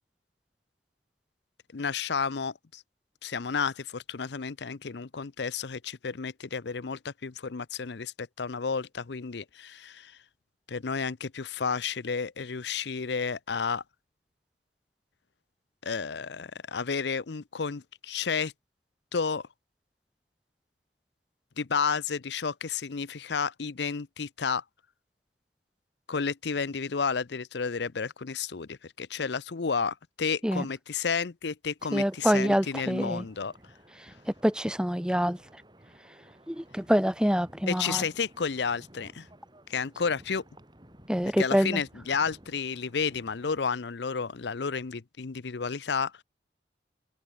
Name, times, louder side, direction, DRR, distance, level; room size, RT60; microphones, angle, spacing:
voice 1, 1.7-2.8 3.2-10.2 10.7-13.8 15.8-18.5 19.1-19.5 21.6-24.6 26.1-33.5 37.7-39.3 39.7-40.4 41.4-46.2, left 5 dB, 65° left, 0.6 m, -31 dB
Wind, 31.8-43.6, right 1 dB, 25° right, 5.2 m, -55 dB
voice 2, 31.9-33.2 34.0-35.6 36.5-38.0 41.1-41.8, equal, 5° right, 1.2 m, -26 dB
open air
head